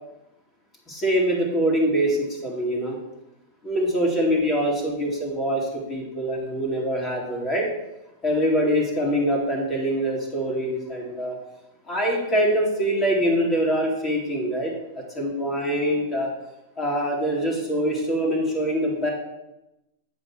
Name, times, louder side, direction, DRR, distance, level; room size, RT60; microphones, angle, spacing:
voice 1, 0.9-3.0 3.6-7.7 8.2-11.4 11.9-14.7 15.1-16.3 16.8-19.1, equal, 25° left, -3 dB, 2.5 m, -24 dB
8.1 x 5.0 x 6.0 m, 0.95 s
hypercardioid pair, 110°, 0 cm